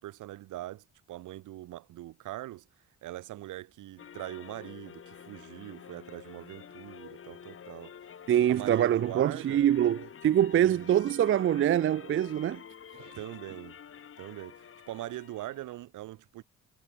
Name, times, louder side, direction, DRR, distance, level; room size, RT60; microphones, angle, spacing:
voice 1, 0.0-2.7 3.0-8.2 8.5-9.6 10.5-10.9 13.1-13.8 14.2-16.4, right 15 dB, 85° right, 2.3 m, -42 dB
sound 1, 4.0-15.8, left 8 dB, 45° left, 1.7 m, -49 dB
voice 2, 8.3-12.6, right 11 dB, 45° right, 0.5 m, -24 dB
cardioid pair, 90°, 30 cm